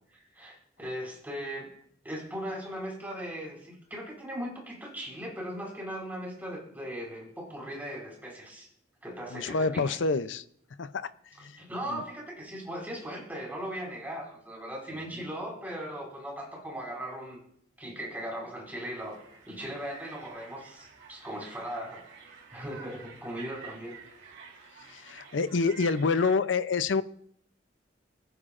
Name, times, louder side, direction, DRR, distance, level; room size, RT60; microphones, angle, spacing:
voice 1, 0.1-1.7 2.0-8.7 9.0-10.0 11.4-17.4 17.8-22.0 22.5-24.0, equal, 10° right, -2 dB, 4.0 m, -38 dB
voice 2, 9.3-10.4 10.8-11.1 11.4-11.6 11.9-12.0 24.9-27.0, left 4 dB, 80° left, 14 dB, 0.6 m, -27 dB
sound 1, 19.0-26.3, right 5 dB, 90° right, 2.7 m, -49 dB
21.0 x 9.9 x 2.5 m, 0.66 s
head